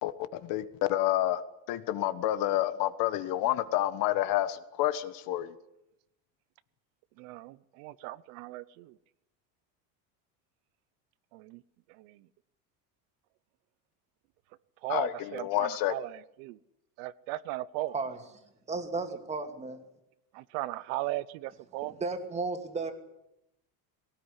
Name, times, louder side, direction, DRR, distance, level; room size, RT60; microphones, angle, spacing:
voice 1, 0.0-1.4 1.7-5.5 14.9-15.9, left 14 dB, 55° left, 13 dB, 1.5 m, -29 dB
voice 2, 7.2-9.0 11.3-11.6 11.9-12.3 14.8-16.6 17.0-17.9 20.3-22.0, right 16 dB, 70° right, 18 dB, 0.9 m, -37 dB
voice 3, 18.7-19.8 21.8-22.9, right 3 dB, 15° right, 6 dB, 2.5 m, -34 dB
19.5 x 18.5 x 10.0 m, 0.84 s
cardioid pair, 160°, 41 cm